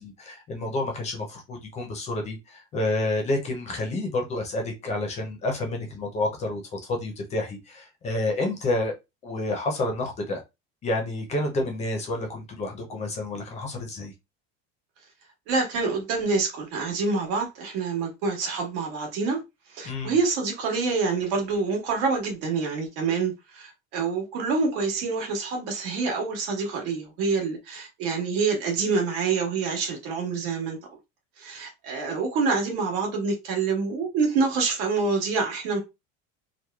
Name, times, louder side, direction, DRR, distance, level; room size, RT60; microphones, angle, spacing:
voice 1, 0.0-9.0 9.2-10.4 10.8-14.1 19.8-20.2, left 2 dB, 20° left, 0.4 m, -29 dB
voice 2, 15.5-19.4 19.7-30.8 31.4-35.8, right 4 dB, 85° right, 1.3 m, -26 dB
3.0 x 2.0 x 2.2 m
cardioid pair, 180°, 32 cm